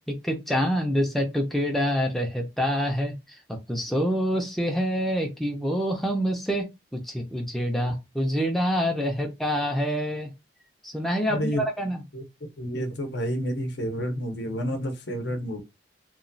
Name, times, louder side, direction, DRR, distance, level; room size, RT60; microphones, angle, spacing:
voice 1, 0.1-10.3 10.8-12.0, equal, ahead, 0.4 m, -26 dB
voice 2, 11.3-11.6 12.1-15.6, equal, 70° left, 0.6 m, -30 dB
3.0 x 2.2 x 2.5 m
head